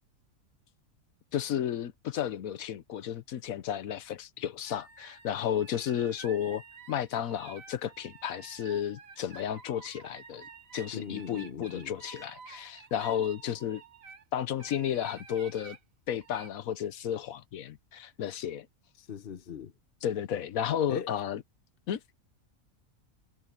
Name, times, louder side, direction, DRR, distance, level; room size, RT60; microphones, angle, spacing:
voice 1, 1.3-6.6 6.9-10.5 10.7-13.8 14.3-15.8 16.1-18.7 20.0-21.4 21.9-22.0, left 9 dB, 90° left, 1.3 m, -33 dB
sound 1, 4.6-14.2 14.6-15.8 16.2-16.5, right 6 dB, 80° right, 1.8 m, -51 dB
voice 2, 10.9-11.9 19.0-19.7 20.9-21.1, left 6 dB, 45° left, 1.1 m, -39 dB
omnidirectional pair, 1.4 m